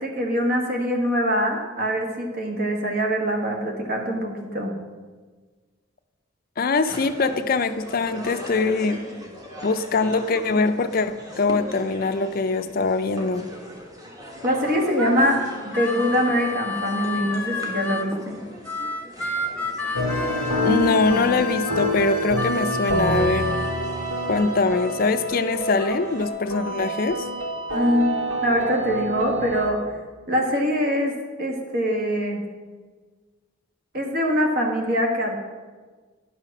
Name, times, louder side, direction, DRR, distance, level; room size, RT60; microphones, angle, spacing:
voice 1, 0.0-4.7 14.4-18.4 27.7-29.8 30.3-31.1 31.4-32.4 33.9-35.4, equal, 50° right, 1 dB, 1.6 m, -23 dB
voice 2, 6.6-9.0 9.6-13.5 20.6-23.5 24.3-27.3, left 3 dB, 45° left, 10 dB, 0.5 m, -23 dB
sound 1, 6.9-26.3, equal, 20° right, 1.4 m, -40 dB
Harmonica, 14.6-18.1 18.6-23.7, left 2 dB, 10° left, 0.8 m, -30 dB
sound 2, 19.9-29.7, equal, 85° right, 2.0 m, -27 dB
10.5 x 5.8 x 6.1 m, 1.4 s
head